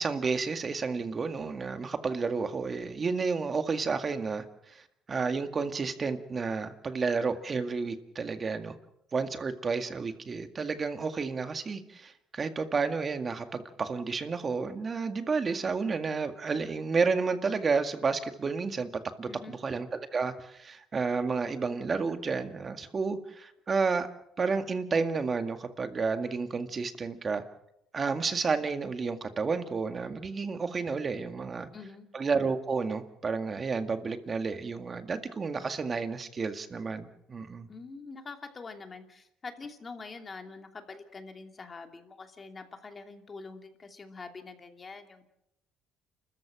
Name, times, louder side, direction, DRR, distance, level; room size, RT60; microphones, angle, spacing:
voice 1, 0.0-4.8 5.1-8.8 9.1-18.9 19.2-24.1 24.4-27.4 27.9-31.7 32.1-37.7, right 4 dB, 30° right, 8 dB, 1.9 m, -31 dB
voice 2, 19.3-19.6 31.7-32.1 37.7-45.2, left 4 dB, 25° left, 5 dB, 2.7 m, -45 dB
30.0 x 14.0 x 7.6 m, 0.82 s
cardioid pair, 115°, 0 cm